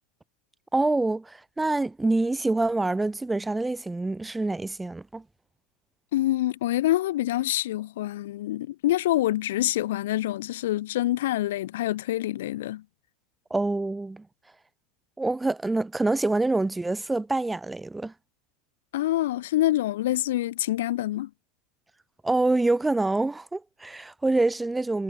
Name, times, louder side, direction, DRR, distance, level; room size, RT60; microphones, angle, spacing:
voice 1, 0.7-5.2 13.5-14.3 15.2-18.1 22.2-25.0, right 2 dB, 10° right, 1.9 m, -26 dB
voice 2, 6.1-12.8 18.9-21.3, left 14 dB, 85° left, 1.6 m, -26 dB
supercardioid pair, 130°, 0 cm